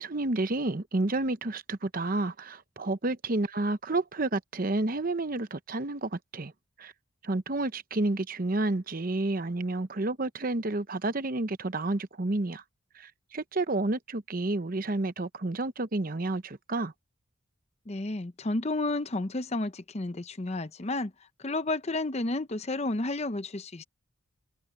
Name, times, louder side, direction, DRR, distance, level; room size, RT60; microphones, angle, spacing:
voice 1, 0.0-6.5 6.8-6.9 7.2-12.6 12.9-16.9, right 2 dB, 40° right, 0.8 m, -30 dB
voice 2, 17.9-21.1 21.4-23.8, left 2 dB, 30° left, 0.7 m, -31 dB
open air
head